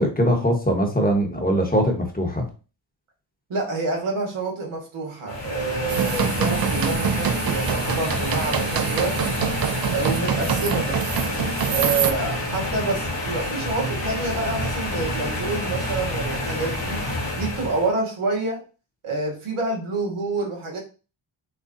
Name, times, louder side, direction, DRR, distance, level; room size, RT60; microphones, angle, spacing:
voice 1, 0.0-2.5, equal, 20° left, 2 dB, 1.1 m, -21 dB
voice 2, 3.5-9.4 9.9-11.0 11.7-17.0 17.4-18.6 19.0-20.8, right 3 dB, 90° right, -1 dB, 1.6 m, -27 dB
sound 1, 5.3-17.9, left 1 dB, 60° left, 2.0 m, -28 dB
sound 2, 5.9-12.1, right 7 dB, 50° right, 0.5 m, -25 dB
6.6 x 2.3 x 2.6 m, 0.33 s
cardioid pair, 65°, 48 cm